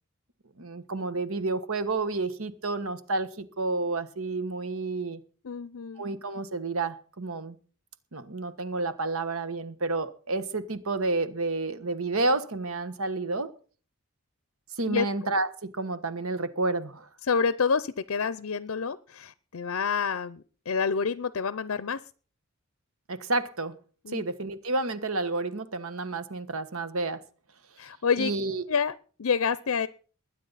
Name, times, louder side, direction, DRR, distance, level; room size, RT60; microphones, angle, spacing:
voice 1, 0.6-5.2 6.0-7.6 8.1-13.5 14.8-17.1 23.1-23.7 24.1-27.2 28.2-28.7, right 3 dB, 70° right, 1.3 m, -30 dB
voice 2, 5.4-6.0 14.9-15.1 17.3-22.0 24.1-24.2 27.8-28.3 28.7-29.9, left 5 dB, 70° left, 0.6 m, -28 dB
21.0 x 9.5 x 4.1 m
head